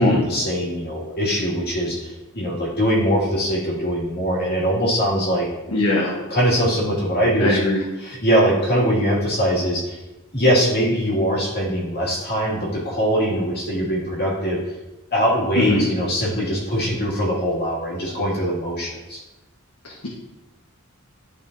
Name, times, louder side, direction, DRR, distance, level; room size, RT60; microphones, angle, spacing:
voice 1, 0.0-5.5 6.3-7.6 8.0-10.0 10.3-14.6 15.1-19.2, equal, 50° left, -6 dB, 2.2 m, -22 dB
voice 2, 5.7-6.1 7.4-7.8 15.5-15.9 19.8-20.1, left 1 dB, 90° left, -3 dB, 1.2 m, -20 dB
12.0 x 4.9 x 2.7 m, 1.1 s
head